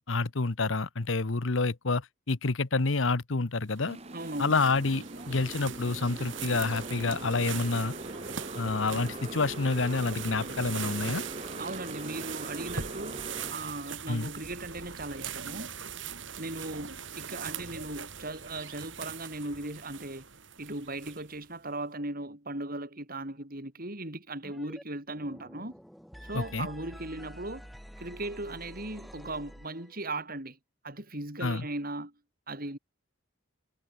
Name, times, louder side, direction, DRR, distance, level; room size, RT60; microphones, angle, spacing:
voice 1, 0.0-4.0 4.4-7.9 8.5-11.2 14.1-14.3 26.3-26.7 31.4-31.7, left 3 dB, 80° left, 1.1 m, -28 dB
sound 1, 3.7-21.5, right 7 dB, 70° right, 3.9 m, -41 dB
Motorcycle, 3.8-13.5, right 2 dB, 35° right, 3.4 m, -42 dB
voice 2, 4.1-4.6 11.6-13.2 13.5-15.7 16.4-20.3 20.6-25.7 26.2-27.7 28.0-30.6 30.8-32.1 32.5-32.8, right 2 dB, 50° right, 6.6 m, -38 dB
sound 2, 24.4-24.8 25.1-30.1, equal, ahead, 7.7 m, -48 dB
head